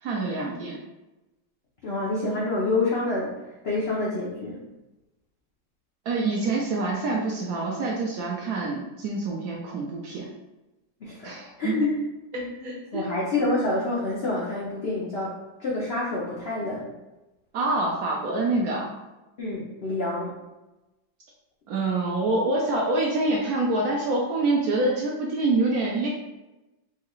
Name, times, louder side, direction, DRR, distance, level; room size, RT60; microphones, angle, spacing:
voice 1, 0.0-0.8 6.1-10.3 11.2-11.9 12.6-13.0 17.5-18.9 21.7-26.1, right 2 dB, 70° right, -2 dB, 0.9 m, -26 dB
voice 2, 1.8-3.3 3.6-4.6 11.0-12.0 12.3-15.3 15.6-16.9 19.4-20.4, left 2 dB, 85° left, -5 dB, 0.5 m, -28 dB
4.5 x 2.3 x 3.0 m, 1.0 s
omnidirectional pair, 2.0 m